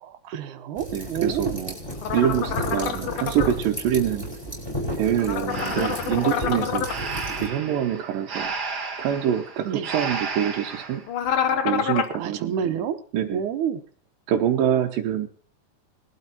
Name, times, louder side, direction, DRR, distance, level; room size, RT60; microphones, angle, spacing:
voice 1, 0.0-1.5 5.7-6.0 9.6-9.9 12.2-13.0 13.3-13.8, right 8 dB, 70° right, 8 dB, 2.5 m, -29 dB
sound 1, 0.8-7.5, equal, 5° left, 4.9 m, -33 dB
voice 2, 0.9-1.8 2.1-4.3 4.9-6.9 7.4-8.5 9.0-11.0 11.6-12.9 13.1-13.4 14.3-15.3, right 10 dB, 90° right, 0 dB, 2.7 m, -25 dB
sound 2, 2.0-3.5 5.2-7.0 11.1-12.2, left 8 dB, 65° left, 1.4 m, -27 dB
Breathing, 5.5-11.0, right 4 dB, 40° right, 1.7 m, -33 dB
21.0 x 12.5 x 2.9 m, 0.42 s
omnidirectional pair, 3.8 m